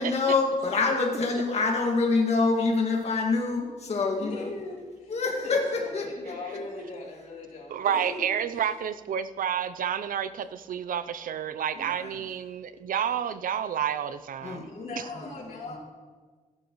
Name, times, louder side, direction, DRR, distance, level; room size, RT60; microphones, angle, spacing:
voice 1, 0.0-4.4 5.1-5.6 5.9-6.1 11.8-12.1 14.4-14.7 15.1-15.3 15.7-15.8, left 3 dB, 50° left, 0 dB, 2.1 m, -26 dB
voice 2, 4.2-5.2 5.4-8.6 14.6-15.8, left 3 dB, 85° left, -4 dB, 3.7 m, -40 dB
voice 3, 7.7-14.7, right 8 dB, 85° right, 14 dB, 0.6 m, -30 dB
15.5 x 11.5 x 3.1 m, 1.4 s
wide cardioid pair, 175°, 14 cm